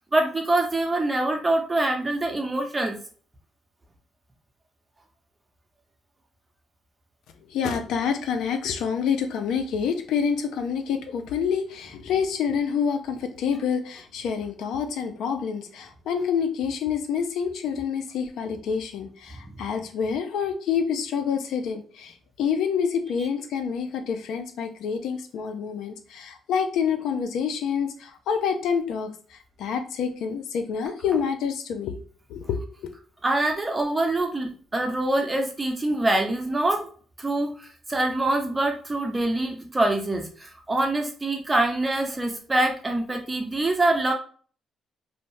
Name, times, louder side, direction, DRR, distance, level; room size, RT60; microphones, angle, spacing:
voice 1, 0.1-3.0 33.2-36.9 37.2-44.1, right 2 dB, 20° right, 3 dB, 0.7 m, -25 dB
voice 2, 7.5-31.9 32.3-32.9, left 7 dB, 80° left, 6 dB, 0.4 m, -27 dB
2.7 x 2.1 x 3.1 m, 0.43 s
cardioid pair, 90°, 0 cm